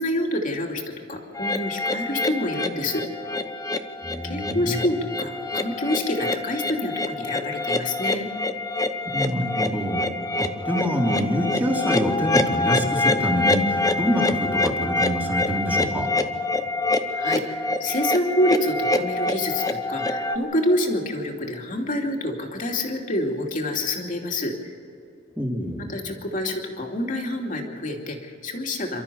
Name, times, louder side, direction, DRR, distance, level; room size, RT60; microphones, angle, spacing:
voice 1, 0.0-3.0 4.2-8.3 17.1-24.5 25.8-29.0, left 1 dB, 45° left, 1 dB, 2.8 m, -27 dB
sound 1, 1.4-20.4, left 2 dB, 20° left, 0.9 m, -26 dB
voice 2, 4.0-4.8 9.0-10.0 10.4-16.1 25.4-25.9, equal, 10° right, -1 dB, 3.3 m, -26 dB
28.5 x 13.5 x 7.0 m, 2.7 s
head